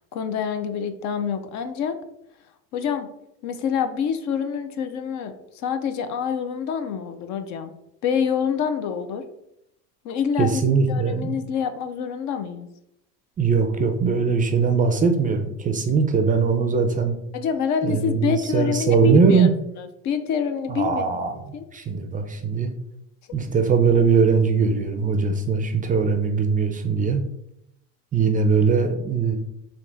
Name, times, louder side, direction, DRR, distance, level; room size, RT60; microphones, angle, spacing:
voice 1, 0.0-2.0 2.7-3.1 3.4-7.7 8.0-9.2 10.0-10.6 10.9-12.7 17.3-19.5 19.8-21.6 23.4-23.5, left 7 dB, 50° left, 9 dB, 0.5 m, -26 dB
voice 2, 10.4-11.3 13.4-17.2 17.8-19.5 20.7-21.3 21.7-22.7 23.3-27.2 28.1-29.4, right 5 dB, 20° right, 6 dB, 0.4 m, -20 dB
3.5 x 2.8 x 3.9 m, 0.80 s
supercardioid pair, 105°, 37 cm